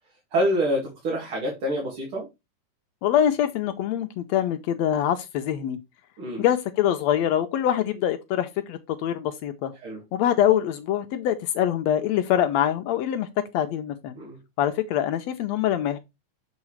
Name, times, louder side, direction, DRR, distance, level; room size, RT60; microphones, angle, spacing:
voice 1, 0.3-2.3 6.2-6.4 9.8-10.0 14.2-14.4, equal, 50° right, 2.6 m, -26 dB
voice 2, 3.0-5.8 6.4-9.7 10.1-13.3 13.5-14.2 14.6-16.0, left 10 dB, 80° left, 1.8 m, -24 dB
7.2 x 5.6 x 3.1 m
omnidirectional pair, 3.3 m